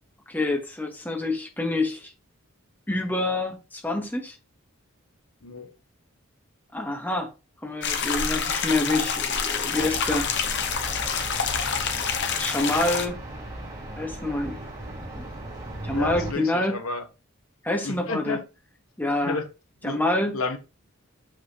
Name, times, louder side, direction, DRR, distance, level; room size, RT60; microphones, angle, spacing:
voice 1, 0.3-2.1 2.9-4.4 6.7-7.3 7.6-10.3 12.4-13.2 14.0-14.6 15.1-15.2 15.8-16.7 17.6-18.4 19.0-19.4 19.8-20.3, left 2 dB, 10° left, 1.1 m, -27 dB
sound 1, 7.8-13.1, left 6 dB, 55° left, 1.0 m, -27 dB
sound 2, 9.7-16.3, right 1 dB, 20° right, 3.8 m, -37 dB
voice 2, 15.9-17.0 17.8-18.4 19.2-19.5 19.8-20.0 20.3-20.6, left 3 dB, 80° left, 1.2 m, -31 dB
6.5 x 5.7 x 2.9 m
head